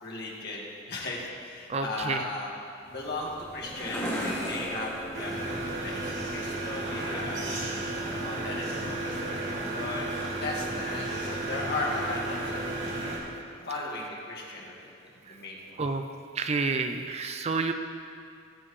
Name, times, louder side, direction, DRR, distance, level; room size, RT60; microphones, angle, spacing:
voice 1, 0.0-2.5 2.8-7.5 8.1-13.1 13.6-15.8, left 2 dB, 55° left, -3 dB, 2.0 m, -37 dB
voice 2, 1.7-2.2 15.8-16.0 16.4-17.7, right 4 dB, 30° right, 7 dB, 0.4 m, -29 dB
sound 1, 2.8-6.4, equal, 15° left, 2.5 m, -36 dB
sound 2, 5.1-13.2, right 2 dB, 70° right, 2.6 m, -33 dB
19.0 x 7.7 x 3.2 m, 2.4 s
head